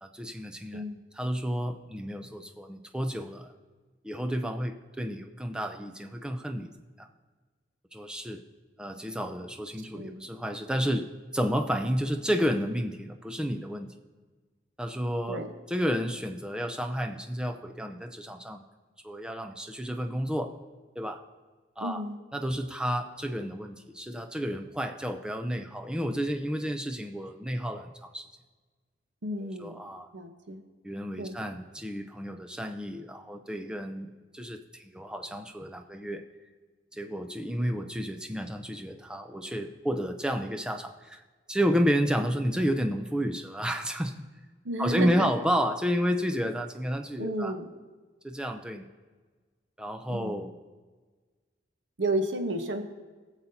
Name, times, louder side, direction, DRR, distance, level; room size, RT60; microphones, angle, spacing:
voice 1, 0.0-0.8 1.1-3.5 4.0-7.1 7.9-8.4 8.8-13.9 14.8-15.4 15.7-18.6 19.0-20.5 21.0-21.2 21.8-22.0 22.3-28.3 29.4-30.1 30.8-36.2 36.9-41.2 41.5-44.2 44.8-47.5 48.2-48.9 49.8-50.5, equal, 5° right, 5 dB, 0.5 m, -31 dB
voice 2, 9.9-10.2 15.3-15.5 21.8-22.2 29.2-29.9 30.1-30.7 31.2-31.3 44.6-45.3 47.2-47.7 50.1-50.5 52.0-52.8, right 1 dB, 85° right, 6 dB, 1.0 m, -32 dB
20.0 x 7.2 x 2.8 m, 1.4 s
head